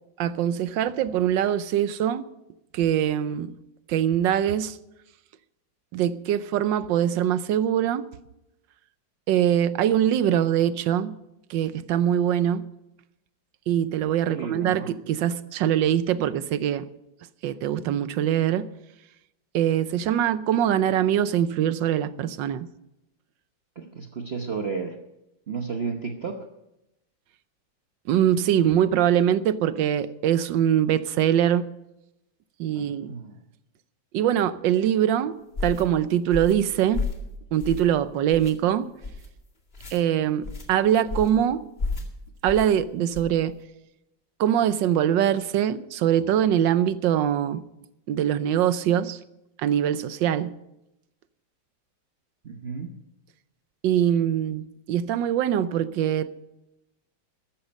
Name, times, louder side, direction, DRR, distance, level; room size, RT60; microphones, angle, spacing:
voice 1, 0.2-2.2 2.7-3.5 3.9-4.8 5.9-8.1 9.3-11.1 11.5-12.7 13.7-16.9 17.4-18.7 19.5-22.7 28.1-31.7 32.6-33.1 34.1-35.4 35.6-37.0 37.5-38.9 39.9-41.6 42.4-43.5 44.4-47.6 48.1-49.2 49.6-50.5 53.8-56.3, right 10 dB, 75° right, 1.4 m, -23 dB
voice 2, 14.3-14.9 23.8-25.0 25.5-26.5 32.7-33.4 52.4-52.9, right 5 dB, 40° right, 1.0 m, -33 dB
sound 1, 35.5-35.8 36.3-36.6 36.9-37.2 37.6-38.0 38.3-38.5 39.0-39.3 39.7-40.0 40.4-40.7 41.1-41.4 41.8-42.1 42.5-42.7 43.1-43.4, left 4 dB, 30° left, 2.3 m, -31 dB
13.5 x 13.5 x 5.3 m
omnidirectional pair, 2.1 m